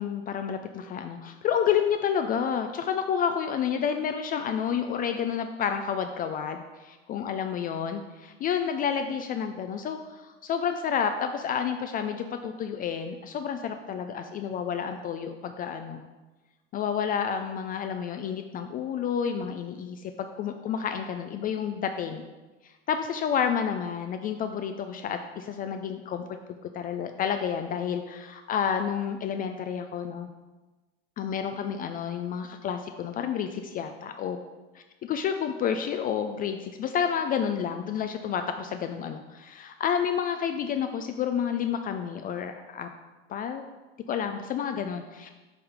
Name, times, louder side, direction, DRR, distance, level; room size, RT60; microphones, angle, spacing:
voice 1, 0.0-16.1 16.7-22.3 22.6-26.2 26.7-30.3 31.2-34.4 35.1-42.9 43.3-43.6 44.1-45.3, left 8 dB, 30° left, 7 dB, 0.3 m, -30 dB
6.9 x 3.5 x 4.9 m, 1.2 s
hypercardioid pair, 95°, 32 cm